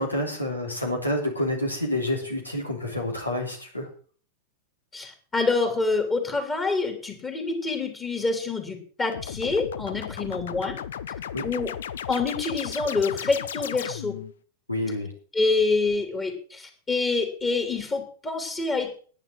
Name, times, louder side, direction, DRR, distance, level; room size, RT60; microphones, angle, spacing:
voice 1, 0.0-3.9 11.3-11.4 14.7-15.1, left 1 dB, 85° left, 1 dB, 3.3 m, -28 dB
voice 2, 4.9-10.8 11.4-11.7 12.1-14.2 15.3-19.0, left 3 dB, 20° left, 4 dB, 3.1 m, -26 dB
sound 1, 9.1-14.3, left 9 dB, 60° left, 0.7 m, -35 dB
10.5 x 10.0 x 6.5 m, 0.43 s
figure-of-eight pair, 90°, 0 cm